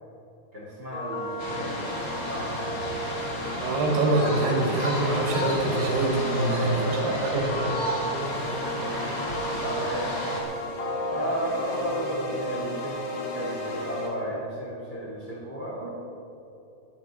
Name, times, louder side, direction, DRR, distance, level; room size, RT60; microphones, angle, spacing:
voice 1, 0.5-3.5 6.3-7.4 8.0-10.2 11.1-15.9, equal, 35° right, -5 dB, 1.8 m, -34 dB
sound 1, 0.9-14.1, left 1 dB, 50° left, 2.5 m, -33 dB
sound 2, 1.4-10.4, equal, 85° left, 0.7 m, -33 dB
voice 2, 3.5-7.6, right 2 dB, 65° right, 0 dB, 3.8 m, -25 dB
20.5 x 9.1 x 4.1 m, 2.9 s
omnidirectional pair, 5.5 m